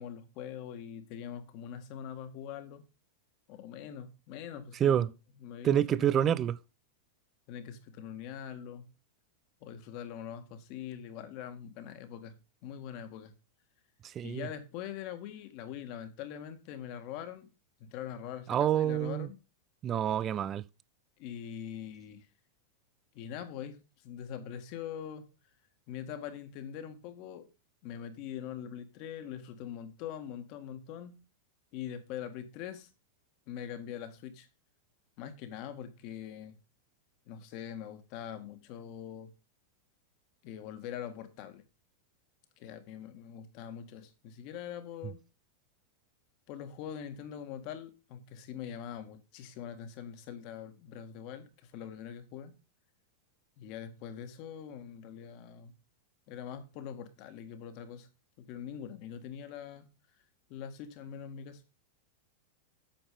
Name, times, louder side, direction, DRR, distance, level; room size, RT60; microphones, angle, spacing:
voice 1, 0.0-2.9 3.5-5.1 5.4-6.4 7.5-8.9 9.6-12.4 12.6-13.3 14.2-17.5 17.8-19.4 21.2-22.3 23.1-23.8 24.0-25.3 25.9-27.5 27.8-31.2 31.7-32.9 33.5-34.5 35.2-36.6 37.3-39.3 40.4-41.6 42.6-45.2 46.5-52.5 53.6-55.7 56.3-58.1 58.5-59.9 60.5-61.6, left 9 dB, 45° left, 1.9 m, -43 dB
voice 2, 5.6-6.6 14.0-14.5 18.5-19.3 19.8-20.6, right 10 dB, 30° right, 0.5 m, -27 dB
8.9 x 7.1 x 5.1 m
figure-of-eight pair, 90°, 0 cm